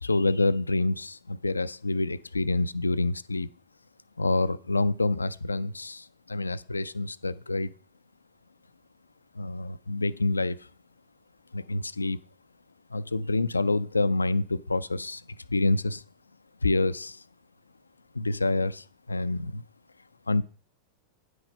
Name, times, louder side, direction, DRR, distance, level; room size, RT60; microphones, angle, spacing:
voice 1, 0.0-3.5 4.2-7.7 9.4-10.7 11.5-12.2 12.9-15.2 15.5-16.0 16.6-17.2 18.1-19.6 20.3-20.4, left 2 dB, 80° left, 0.3 m, -27 dB
9.5 x 6.3 x 5.2 m
figure-of-eight pair, 90°, 0 cm